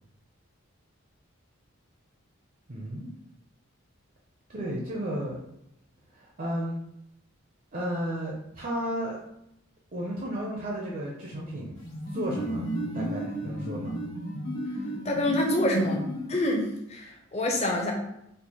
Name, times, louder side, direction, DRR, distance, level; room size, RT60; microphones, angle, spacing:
voice 1, 2.7-3.1 4.5-5.4 6.1-6.8 7.7-9.2 9.9-11.8 12.1-12.7 12.9-13.9, equal, 40° right, -3 dB, 0.5 m, -33 dB
sound 1, 11.8-16.7, right 1 dB, 70° left, 1.2 m, -34 dB
voice 2, 15.0-17.9, left 1 dB, 30° left, 0 dB, 0.6 m, -27 dB
4.4 x 2.5 x 2.8 m, 0.78 s
head